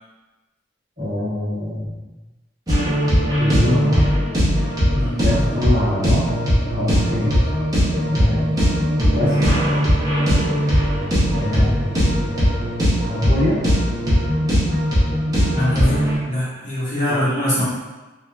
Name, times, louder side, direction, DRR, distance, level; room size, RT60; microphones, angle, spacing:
voice 1, 1.0-1.9 3.4-4.1 5.2-6.3 6.7-7.3 8.0-8.5 9.0-9.5 11.3-11.8 12.3-12.5 13.1-13.6 17.1-17.2, left 1 dB, 40° right, -9 dB, 0.9 m, -23 dB
sound 1, 2.7-16.2, equal, 20° right, 0.7 m, -19 dB
voice 2, 4.9-5.2 15.5-17.6, left 1 dB, 40° left, -9 dB, 1.0 m, -23 dB
3.1 x 2.3 x 2.4 m, 1.2 s
head